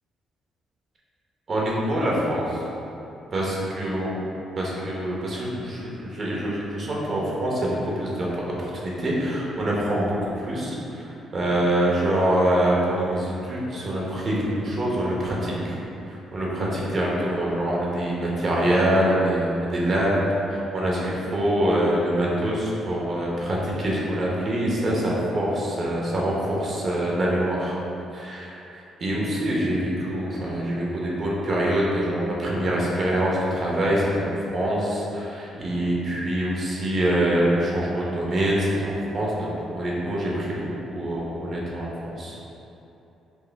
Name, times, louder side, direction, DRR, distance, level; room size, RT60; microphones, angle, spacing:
voice 1, 1.5-2.6 3.3-4.1 4.6-11.0 11.3-15.8 16.1-20.1 20.5-27.8 28.1-28.6 29.0-42.3, right 1 dB, 45° right, -4 dB, 0.9 m, -25 dB
4.5 x 2.4 x 3.4 m, 2.9 s
cardioid pair, 90°, 0 cm